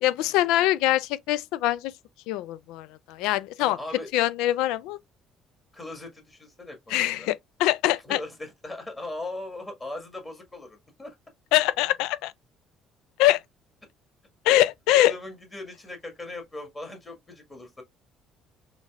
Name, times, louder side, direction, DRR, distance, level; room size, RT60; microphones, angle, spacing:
voice 1, 0.0-1.9 2.3-3.8 4.1-5.0 6.9-8.2 11.5-12.3 13.2-13.4 14.5-15.1, left 15 dB, 90° left, 0.3 m, -23 dB
voice 2, 3.6-4.1 5.7-7.3 8.0-11.2 15.0-17.8, left 2 dB, 20° left, 1.6 m, -39 dB
4.0 x 3.1 x 2.4 m
cardioid pair, 105°, 0 cm